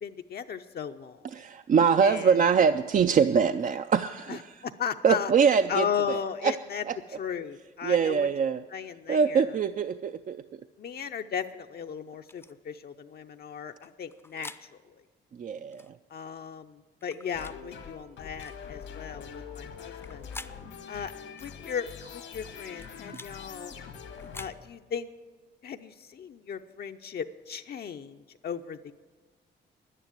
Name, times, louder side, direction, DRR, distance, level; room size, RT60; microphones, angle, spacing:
voice 1, 0.0-1.2 2.0-2.4 4.3-5.3 5.7-6.8 7.1-8.3 8.7-9.5 10.8-14.8 16.1-20.3 20.9-21.1 21.4-23.7 24.3-25.1 25.6-28.9, left 7 dB, 55° left, 6 dB, 0.6 m, -36 dB
voice 2, 1.3-4.5 5.0-6.5 6.9-7.0 7.8-8.6 9.1-10.4 15.4-15.9, right 6 dB, 45° right, 10 dB, 0.4 m, -24 dB
sound 1, 12.3-12.5 13.8-14.6 15.7-15.9 17.0-17.6 18.4-18.6 19.8-20.6 21.4-21.6 22.5-23.3 24.1-24.6, left 2 dB, 10° left, 0.5 m, -46 dB
sound 2, 17.3-25.1, left 6 dB, 85° left, 1.8 m, -44 dB
11.0 x 10.0 x 9.0 m, 1.3 s
cardioid pair, 100°, 19 cm